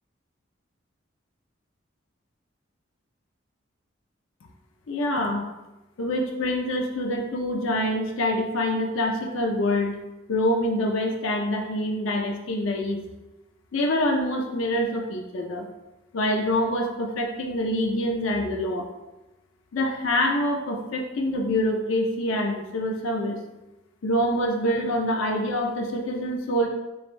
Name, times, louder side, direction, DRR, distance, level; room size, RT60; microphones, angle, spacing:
voice 1, 4.9-5.5 6.0-10.0 10.3-13.0 13.7-15.7 16.1-18.9 19.7-23.4 24.0-26.7, left 1 dB, 80° left, 2 dB, 0.5 m, -25 dB
4.8 x 2.6 x 3.1 m, 1.0 s
head